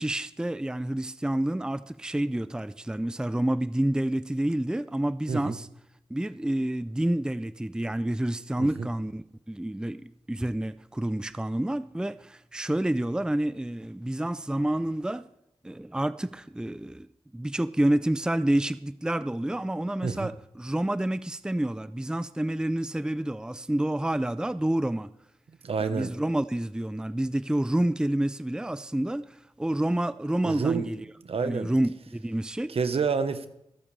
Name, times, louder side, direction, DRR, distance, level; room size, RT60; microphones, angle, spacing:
voice 1, 0.0-5.7 6.1-15.2 15.6-17.1 17.3-25.1 25.8-31.0 31.4-32.7, right 1 dB, 5° right, 0.5 m, -28 dB
voice 2, 25.6-26.1 30.4-30.9 31.2-31.7 32.7-33.5, right 5 dB, 65° right, 1.1 m, -28 dB
24.5 x 8.8 x 3.4 m
cardioid pair, 55°, 10 cm